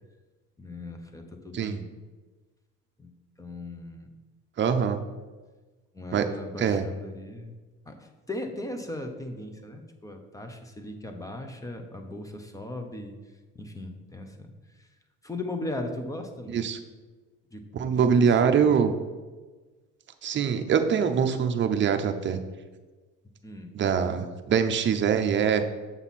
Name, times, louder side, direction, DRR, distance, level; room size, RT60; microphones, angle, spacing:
voice 1, 0.6-1.9 3.0-3.1 3.4-4.1 5.9-7.5 7.9-13.2 13.5-14.9 15.2-16.6 17.5-17.6 17.9-18.7 23.4-23.7, left 2 dB, 10° left, 5 dB, 0.8 m, -38 dB
voice 2, 4.6-5.0 6.1-6.2 6.6-6.8 16.5-16.8 17.7-18.9 20.2-22.4 23.7-25.7, right 7 dB, 35° right, 7 dB, 0.7 m, -23 dB
7.1 x 5.6 x 4.2 m, 1.3 s
cardioid pair, 115°, 31 cm